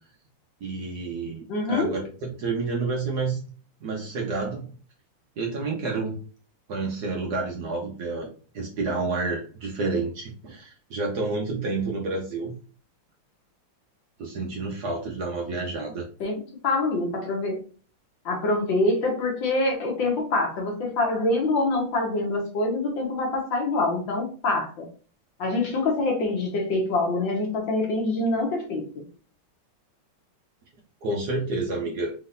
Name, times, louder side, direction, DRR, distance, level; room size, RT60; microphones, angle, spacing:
voice 1, 0.6-3.4 3.8-4.7 5.4-6.2 6.7-8.3 8.5-12.5 14.2-16.0 31.0-32.1, right 3 dB, 60° right, 0 dB, 1.1 m, -29 dB
voice 2, 1.5-1.9 16.2-17.6 18.3-24.9 25.4-29.0, left 2 dB, 65° left, 1 dB, 1.8 m, -25 dB
4.5 x 3.8 x 2.5 m, 0.40 s
omnidirectional pair, 2.4 m